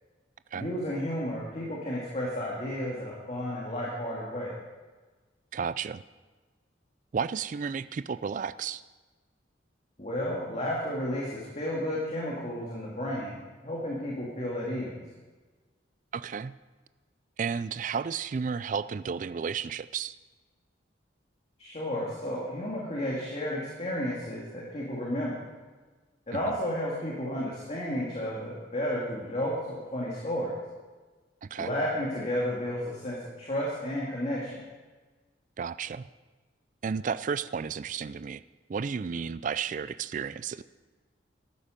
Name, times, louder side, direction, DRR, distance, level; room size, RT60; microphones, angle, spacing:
voice 1, 0.5-4.5 10.0-15.0 21.6-25.4 26.3-30.5 31.6-34.6, equal, 35° left, -4 dB, 2.3 m, -32 dB
voice 2, 5.5-6.0 7.1-8.8 16.1-16.6 17.4-20.1 26.3-26.6 31.4-31.7 35.6-36.1 36.8-38.4 38.7-40.6, right 6 dB, 40° right, 15 dB, 0.3 m, -32 dB
14.0 x 11.5 x 5.2 m, 1.3 s
head